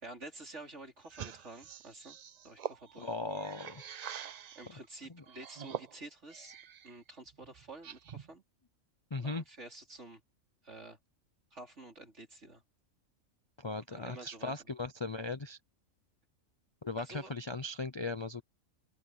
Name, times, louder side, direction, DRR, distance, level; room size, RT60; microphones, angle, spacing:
voice 1, 0.0-2.2 2.4-3.1 4.5-6.5 6.8-8.4 9.2-10.2 10.6-11.0 11.5-12.6 13.8-14.5 17.0-17.3, right 2 dB, 60° right, 4.9 m, -49 dB
sound 1, 1.0-4.7 5.3-6.9 7.3-8.3, right 9 dB, 80° right, 0.3 m, -45 dB
voice 2, 3.0-3.9 5.1-5.2 9.1-9.4 13.6-15.6 16.8-18.4, left 3 dB, 30° left, 0.5 m, -38 dB
open air
omnidirectional pair, 1.3 m